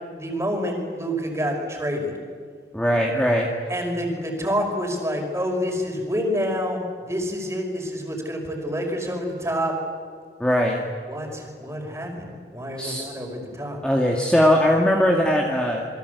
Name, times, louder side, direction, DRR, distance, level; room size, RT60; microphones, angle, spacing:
voice 1, 0.1-2.1 3.7-9.7 11.1-13.8, equal, 15° right, 2 dB, 5.4 m, -28 dB
voice 2, 2.7-3.5 10.4-10.8 12.8-13.1 13.8-15.9, equal, 5° left, -1 dB, 2.1 m, -20 dB
28.5 x 23.5 x 8.3 m, 2.1 s
head